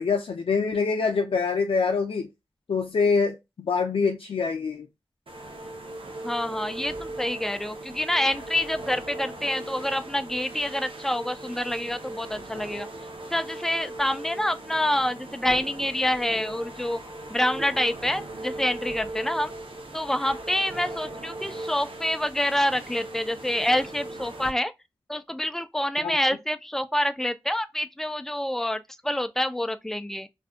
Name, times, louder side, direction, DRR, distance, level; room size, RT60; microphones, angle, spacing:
voice 1, 0.0-2.3 2.7-4.9 26.0-26.2, left 5 dB, 80° left, 0.4 m, -25 dB
sound 1, 5.3-24.5, right 2 dB, 75° right, 0.7 m, -39 dB
voice 2, 6.2-12.9 13.3-17.0 17.3-19.5 19.9-24.7 25.1-30.3, left 1 dB, 5° left, 0.4 m, -27 dB
2.6 x 2.3 x 3.4 m
cardioid pair, 50°, 9 cm